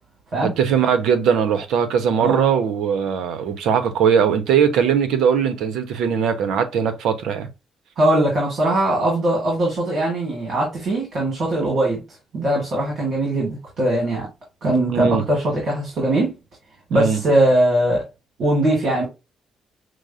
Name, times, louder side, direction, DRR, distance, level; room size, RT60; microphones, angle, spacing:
voice 1, 0.4-7.5 14.9-15.2 16.9-17.2, right 7 dB, 85° right, 0.8 m, -20 dB
voice 2, 8.0-12.0 12.3-14.3 14.6-16.3 16.9-18.0 18.4-19.0, right 1 dB, 60° right, 2.0 m, -20 dB
6.1 x 2.1 x 2.5 m
cardioid pair, 90°, 0 cm